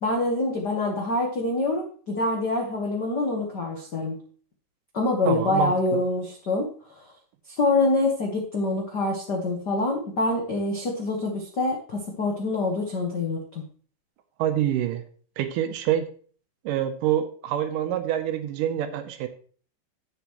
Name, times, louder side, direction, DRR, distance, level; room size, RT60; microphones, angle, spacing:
voice 1, 0.0-4.2 4.9-6.7 7.0-7.1 7.5-13.6, left 2 dB, 85° left, 1 dB, 0.9 m, -25 dB
voice 2, 5.3-6.0 14.4-15.0 15.4-16.1 16.6-19.3, right 11 dB, 75° right, 8 dB, 2.2 m, -26 dB
10.5 x 8.1 x 3.1 m, 0.43 s
omnidirectional pair, 4.1 m